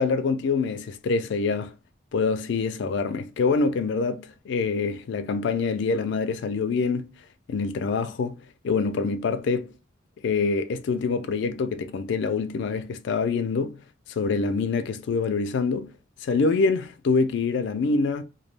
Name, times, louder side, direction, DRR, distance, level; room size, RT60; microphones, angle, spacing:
voice 1, 0.0-1.8 2.1-7.1 7.5-9.7 10.2-13.8 14.1-15.9 16.2-18.2, left 4 dB, 60° left, 0.3 m, -25 dB
2.2 x 2.0 x 3.2 m
head